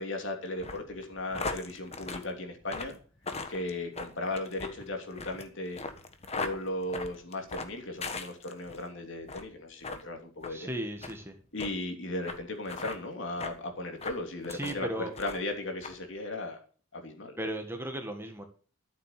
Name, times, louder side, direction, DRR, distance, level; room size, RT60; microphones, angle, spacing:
voice 1, 0.0-3.0 3.5-5.8 6.3-10.8 11.5-16.6 16.9-17.4, left 2 dB, 60° left, 4 dB, 3.0 m, -36 dB
sound 1, 0.6-8.8 9.2-9.5 9.8-10.0 10.4-10.6 11.0-11.2 11.6-11.7 12.3-12.4 12.6-13.0 13.4-13.6 14.0-14.8 15.1-15.5 15.8-15.9, left 3 dB, 30° left, 1.4 m, -39 dB
voice 2, 10.5-11.3 14.5-15.1 17.4-18.4, right 1 dB, 10° right, 5 dB, 1.7 m, -36 dB
13.5 x 7.5 x 6.7 m, 0.41 s
head